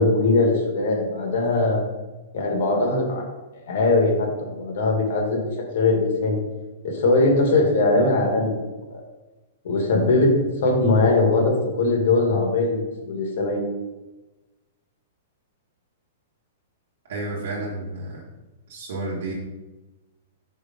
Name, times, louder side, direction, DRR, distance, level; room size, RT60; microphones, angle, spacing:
voice 1, 0.0-1.8 2.3-3.2 3.7-5.4 5.7-6.4 6.9-8.6 8.9-9.0 9.6-10.3 10.6-13.6, left 2 dB, 55° left, 1 dB, 1.7 m, -20 dB
voice 2, 17.1-18.3 18.7-19.3, right 2 dB, 65° right, -6 dB, 1.4 m, -31 dB
4.8 x 4.2 x 5.1 m, 1.1 s
hypercardioid pair, 175°, 0 cm